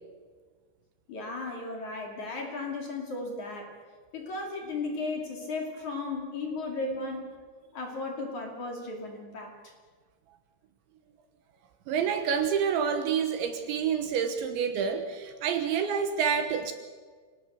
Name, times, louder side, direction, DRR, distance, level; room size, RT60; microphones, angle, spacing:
voice 1, 1.1-3.7 4.1-7.3 7.7-9.7, left 3 dB, 45° left, 1 dB, 3.3 m, -35 dB
voice 2, 11.9-16.7, right 7 dB, 70° right, 7 dB, 3.3 m, -28 dB
27.0 x 19.0 x 6.8 m, 1.5 s
omnidirectional pair, 6.0 m